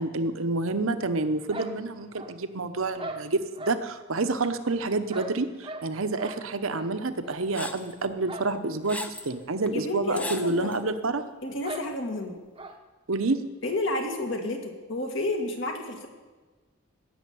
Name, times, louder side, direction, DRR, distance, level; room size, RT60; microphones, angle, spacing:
voice 1, 0.0-11.2 13.1-13.4, right 3 dB, 65° right, 10 dB, 0.9 m, -28 dB
sound 1, 1.5-2.5 3.0-3.8 4.4-5.9 6.2-6.4 6.7-6.9 7.2-7.4 8.2-8.5 8.8-8.9 9.3-9.4 10.2-10.4 10.6-10.7 11.6-11.9 12.5-12.8, right 2 dB, 25° right, 0.9 m, -39 dB
sound 2, 7.5-7.9 8.5-9.3 9.7-9.8 10.2-10.8, left 1 dB, 5° left, 0.7 m, -36 dB
voice 2, 9.7-10.7 11.4-12.4 13.6-16.1, left 2 dB, 55° left, 3 dB, 2.1 m, -30 dB
16.5 x 7.2 x 9.4 m, 1.3 s
head